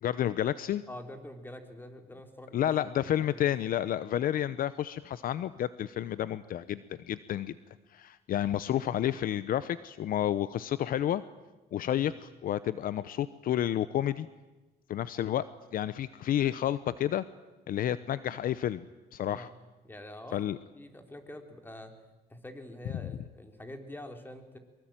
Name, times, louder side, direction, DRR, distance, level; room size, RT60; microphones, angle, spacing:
voice 1, 0.0-0.8 2.5-7.5 7.9-11.2 11.7-14.3 14.9-15.4 15.7-17.2 17.7-18.8 19.1-19.5 20.3-20.6, left 11 dB, 60° left, 16 dB, 0.8 m, -30 dB
voice 2, 0.9-3.8 11.9-12.2 19.3-19.5 19.8-21.9 22.3-24.6, left 1 dB, 10° left, 6 dB, 3.7 m, -46 dB
23.5 x 23.0 x 9.0 m, 1.1 s
cardioid pair, 110°, 17 cm